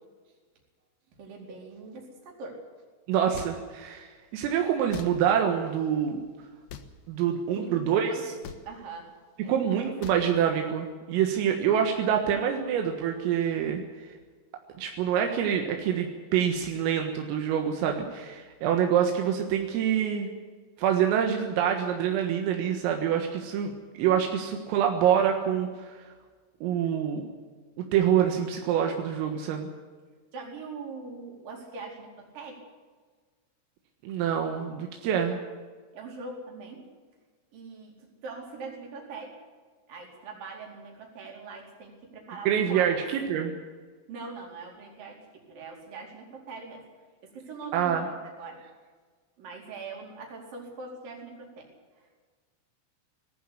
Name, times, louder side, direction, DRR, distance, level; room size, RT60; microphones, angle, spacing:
voice 1, 1.2-2.6 7.5-8.2 8.7-9.1 9.4-9.6 9.8-9.9 30.3-32.6 35.9-36.8 37.5-37.9 38.2-39.3 39.9-42.9 44.1-46.8 47.2-48.6 49.4-51.7 52.0-52.1, right 3 dB, 45° right, 0 dB, 5.7 m, -42 dB
voice 2, 3.1-6.2 7.1-8.1 9.5-13.8 14.8-20.3 20.8-25.9 26.6-27.2 27.9-29.7 34.0-35.4 42.5-43.6 47.7-48.1, right 9 dB, 80° right, 3 dB, 4.2 m, -26 dB
sound 1, 3.3-3.5 4.9-5.1 6.7-6.9 8.4-8.6 10.0-10.2, left 7 dB, 70° left, 2.4 m, -41 dB
19.5 x 15.0 x 10.0 m, 1.5 s
omnidirectional pair, 6.0 m